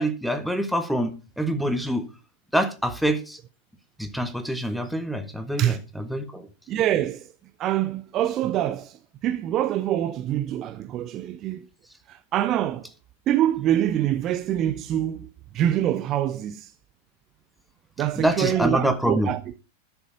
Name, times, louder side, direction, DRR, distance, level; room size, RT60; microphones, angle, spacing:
voice 1, 0.0-2.0 2.5-3.4 4.0-6.5 18.2-19.3, right 1 dB, ahead, 1.6 m, -26 dB
voice 2, 6.7-7.3 7.6-11.7 12.1-12.9 13.3-15.3 15.5-16.7 18.0-19.6, right 12 dB, 35° right, 0.6 m, -25 dB
12.5 x 7.1 x 5.0 m
figure-of-eight pair, 90°, 0 cm